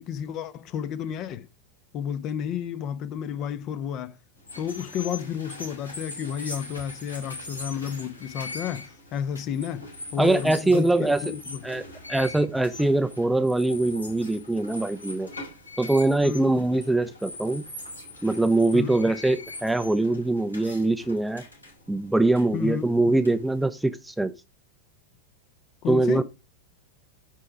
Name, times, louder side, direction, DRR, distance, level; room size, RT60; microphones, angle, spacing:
voice 1, 0.0-1.5 1.9-4.1 4.6-11.6 16.2-16.5 18.7-19.0 22.5-22.9 25.8-26.2, left 9 dB, 35° left, 0.9 m, -31 dB
sound 1, 4.4-23.6, left 2 dB, 80° left, 4.5 m, -42 dB
voice 2, 10.2-11.2 11.6-11.8 12.1-15.3 15.8-17.6 18.2-21.4 21.9-24.3 25.9-26.2, right 2 dB, 5° right, 0.6 m, -23 dB
10.5 x 4.6 x 5.0 m
figure-of-eight pair, 90°, 0 cm